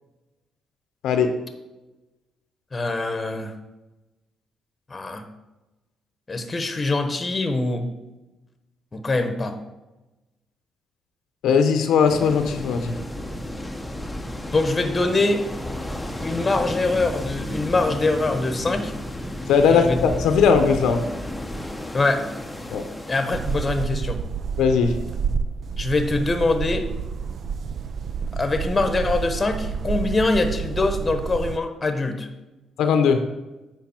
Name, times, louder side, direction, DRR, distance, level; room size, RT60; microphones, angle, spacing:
voice 1, 1.0-1.3 11.4-13.0 19.5-21.0 22.7-22.8 24.6-25.0 32.8-33.2, left 6 dB, 80° left, 6 dB, 0.7 m, -19 dB
voice 2, 2.7-3.5 4.9-5.2 6.3-7.9 8.9-9.6 14.5-15.4 16.2-18.9 19.7-20.0 21.9-22.2 23.1-24.2 25.8-26.9 28.3-32.3, left 2 dB, 25° left, 7 dB, 1.0 m, -23 dB
sound 1, 12.1-23.9, left 1 dB, 5° left, 0.7 m, -33 dB
sound 2, 23.3-31.6, right 6 dB, 55° right, 0.4 m, -29 dB
8.2 x 5.3 x 4.4 m, 1.0 s
cardioid pair, 90°, 0 cm